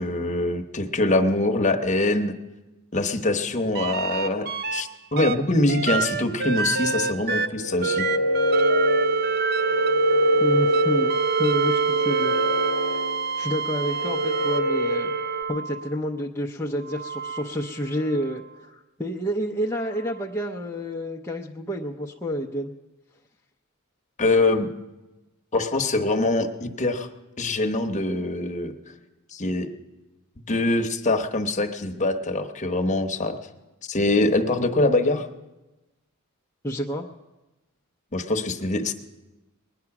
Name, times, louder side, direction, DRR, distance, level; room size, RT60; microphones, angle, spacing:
voice 1, 0.0-2.3 2.9-8.1 24.2-24.7 25.5-27.1 27.4-28.7 29.3-29.7 30.4-33.4 33.9-35.3 38.1-38.9, left 2 dB, 35° left, 5 dB, 1.0 m, -24 dB
sound 1, 3.7-4.8 5.2-15.9 16.8-18.3 20.1-20.2, right 5 dB, 45° right, 0.5 m, -27 dB
sound 2, 7.5-15.4, left 1 dB, 80° left, 0.7 m, -25 dB
voice 2, 10.4-12.4 13.3-22.7 36.6-37.1, equal, 10° left, -1 dB, 0.6 m, -29 dB
20.5 x 9.7 x 5.9 m, 1.1 s
head